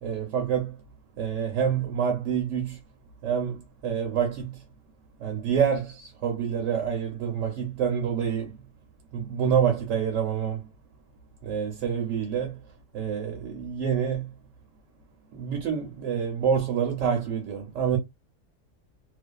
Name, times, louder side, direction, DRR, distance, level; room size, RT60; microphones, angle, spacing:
voice 1, 0.0-0.8 1.2-2.8 3.2-4.6 5.2-8.6 9.1-10.7 11.4-12.6 12.9-14.3 15.3-18.0, right 7 dB, 75° right, 0.9 m, -27 dB
2.4 x 2.3 x 2.2 m
omnidirectional pair, 1.4 m